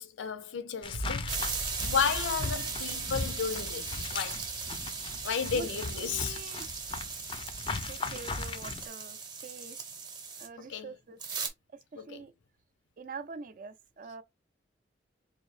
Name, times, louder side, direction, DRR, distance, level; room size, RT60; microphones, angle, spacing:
voice 1, 0.0-1.4 1.8-4.4 5.2-6.4 10.6-10.9 12.0-12.2, left 6 dB, 90° left, 0.5 m, -33 dB
sound 1, 0.8-8.9, left 4 dB, 25° left, 0.3 m, -39 dB
sound 2, 0.9-6.4 6.8-7.4, equal, 85° right, 0.6 m, -44 dB
sound 3, 1.3-10.5 11.2-11.5, right 5 dB, 25° right, 0.7 m, -38 dB
voice 2, 5.5-6.7 7.9-9.8 10.4-11.2 11.7-12.3 13.0-14.2, right 4 dB, 45° right, 0.3 m, -45 dB
4.0 x 2.6 x 3.2 m
head